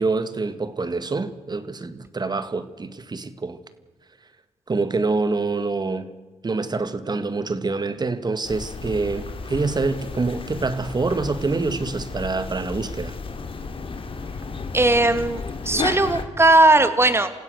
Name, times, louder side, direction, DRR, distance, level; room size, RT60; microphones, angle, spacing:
voice 1, 0.0-3.6 4.7-6.1 6.4-13.2, right 3 dB, 35° right, 1.9 m, -26 dB
sound 1, 8.4-16.3, left 4 dB, 50° left, 2.5 m, -33 dB
voice 2, 14.7-17.3, right 2 dB, 20° right, 2.3 m, -18 dB
28.5 x 16.0 x 6.5 m
cardioid pair, 65°, 12 cm